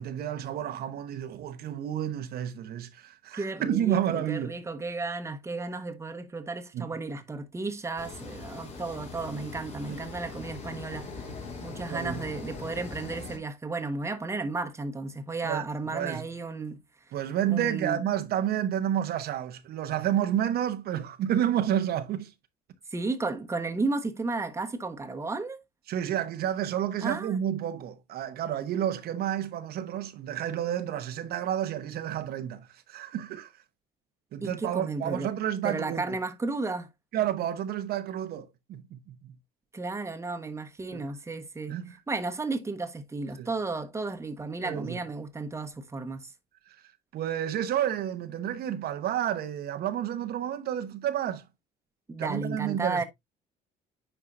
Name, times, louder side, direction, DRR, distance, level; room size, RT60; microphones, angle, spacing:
voice 1, 0.0-4.5 6.7-6.9 11.9-12.2 15.4-15.6 15.9-16.2 17.1-22.3 25.9-33.5 34.3-36.2 37.1-39.3 40.9-41.0 41.7-42.0 43.4-43.5 44.6-45.0 46.7-46.8 47.1-51.5 52.2-53.0, right 10 dB, 65° right, 0.9 m, -30 dB
voice 2, 3.3-11.1 11.6-16.8 17.5-18.0 22.9-25.6 27.0-27.4 34.4-35.3 35.6-36.9 39.7-41.8 42.1-46.3 52.1-53.0, right 3 dB, 15° right, 1.1 m, -33 dB
sound 1, 8.0-13.4, left 4 dB, 40° left, 3.1 m, -41 dB
9.8 x 4.6 x 2.5 m
cardioid pair, 110°, 17 cm